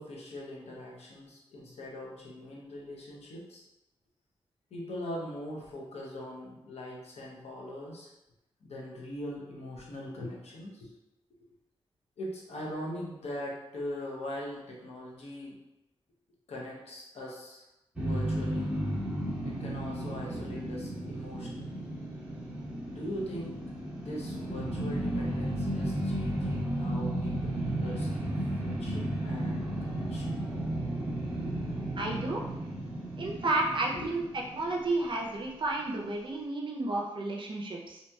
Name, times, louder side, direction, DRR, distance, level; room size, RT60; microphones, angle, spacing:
voice 1, 0.0-3.6 4.7-8.1 8.6-11.0 12.2-15.6 16.5-17.6 18.0-18.7 19.4-21.9 22.9-23.6 24.0-30.4 31.0-31.5 32.8-32.9 33.9-34.1, left 1 dB, 80° left, -3 dB, 0.7 m, -41 dB
sound 1, 17.9-35.1, right 1 dB, 10° right, 1.0 m, -34 dB
voice 2, 32.0-32.4 33.2-34.2 34.5-38.0, right 2 dB, 50° right, -1 dB, 0.5 m, -31 dB
2.8 x 2.7 x 2.2 m, 0.94 s
wide cardioid pair, 90°, 11 cm